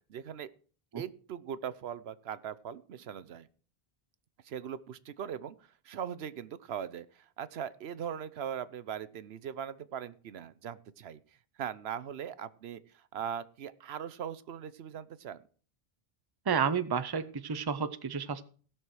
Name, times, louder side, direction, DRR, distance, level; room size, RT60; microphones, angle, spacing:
voice 1, 0.1-0.5 1.0-3.5 4.4-5.5 5.8-11.2 11.6-12.8 13.1-15.4, right 8 dB, 80° right, 15 dB, 0.9 m, -40 dB
voice 2, 16.5-18.5, right 6 dB, 25° right, 12 dB, 0.6 m, -31 dB
17.0 x 6.1 x 4.7 m, 0.42 s
omnidirectional pair, 1.1 m